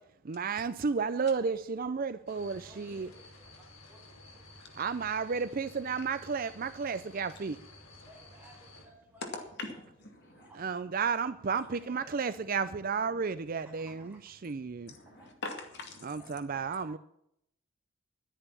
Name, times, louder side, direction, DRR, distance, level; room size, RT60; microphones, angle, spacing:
voice 1, 0.3-3.1 4.8-7.6 10.6-14.1 14.4-14.9 16.0-17.0, right 5 dB, 45° right, 0.5 m, -32 dB
sound 1, 2.3-8.8, left 2 dB, 85° left, 3.7 m, -54 dB
voice 2, 2.3-4.0 4.3-4.5 8.0-9.8 10.2-10.7 11.0-11.1 11.7-12.3 12.9-13.1 13.6-14.2 15.0-15.3 16.2-16.3 16.7-16.9, right 2 dB, 5° right, 4.8 m, -58 dB
voice 3, 14.9-16.2, left 3 dB, 55° left, 2.3 m, -42 dB
11.0 x 10.0 x 6.9 m
head